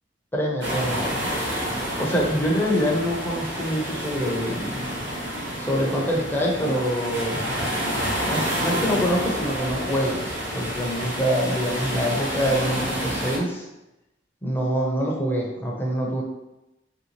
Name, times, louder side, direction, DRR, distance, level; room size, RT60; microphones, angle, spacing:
voice 1, 0.3-1.2 2.0-4.8 5.6-7.4 8.3-13.7 14.4-16.2, equal, 10° left, -2 dB, 0.5 m, -25 dB
sound 1, 0.6-13.4, equal, 80° right, 0.9 m, -29 dB
3.2 x 2.7 x 2.9 m, 0.92 s
head